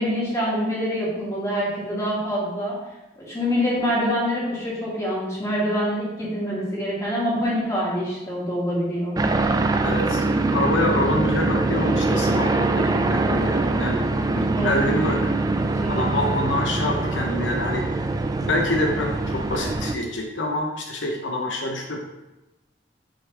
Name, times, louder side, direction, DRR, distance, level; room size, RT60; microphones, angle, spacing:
voice 1, 0.0-2.7 3.2-9.2 14.6-14.9 15.7-16.3, equal, 15° left, -7 dB, 2.3 m, -25 dB
sound 1, 9.2-19.9, right 2 dB, 20° right, 0.4 m, -23 dB
voice 2, 9.8-10.2 10.5-14.0 14.3-15.3 15.9-18.1 18.4-22.1, left 1 dB, 90° left, 1 dB, 0.9 m, -26 dB
9.2 x 3.6 x 3.4 m, 1.0 s
head